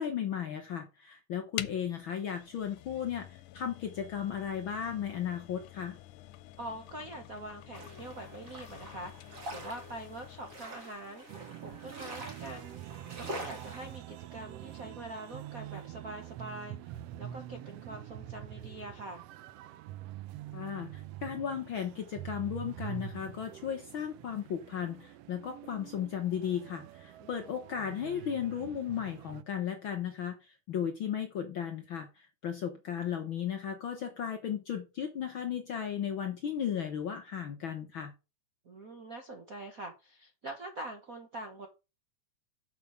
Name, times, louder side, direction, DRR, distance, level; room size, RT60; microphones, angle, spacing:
voice 1, 0.0-6.0 20.5-38.1, left 8 dB, 60° left, 1.4 m, -35 dB
sound 1, 1.6-10.7, left 15 dB, 90° left, 2.1 m, -47 dB
voice 2, 6.6-11.2 11.6-12.8 13.1-19.2 27.2-27.3 38.6-41.7, right 1 dB, 55° right, 1.0 m, -44 dB
sound 2, 7.7-14.0, right 1 dB, 30° right, 2.1 m, -45 dB
sound 3, 11.3-29.4, right 12 dB, 90° right, 1.4 m, -46 dB
7.0 x 6.0 x 6.3 m
omnidirectional pair, 3.5 m